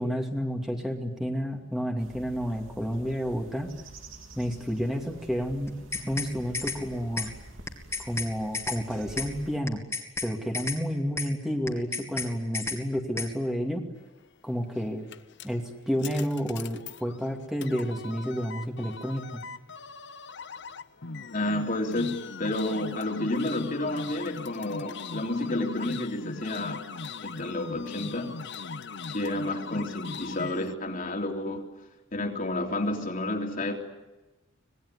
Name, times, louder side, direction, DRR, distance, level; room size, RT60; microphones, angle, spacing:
voice 1, 0.0-3.7 4.4-7.3 8.0-9.8 10.2-13.8 14.4-15.0 15.4-19.4, equal, ahead, 2 dB, 2.5 m, -30 dB
sound 1, 2.0-9.6, right 1 dB, 75° right, 3.2 m, -48 dB
sound 2, 5.7-6.3 6.5-6.8 7.2-7.3 7.7-8.3 8.5-8.8 9.2-9.3 9.7-10.3 10.5-10.8 11.2-11.3 11.7-12.3 12.5-12.8 13.2-13.3, left 4 dB, 15° left, 2.6 m, -32 dB
sound 3, 14.5-30.7, left 4 dB, 60° left, 0.9 m, -40 dB
voice 2, 21.3-26.9 27.2-28.4 29.1-31.7 32.1-33.8, left 1 dB, 40° left, 2 dB, 3.3 m, -30 dB
26.0 x 19.5 x 9.9 m, 1.1 s
head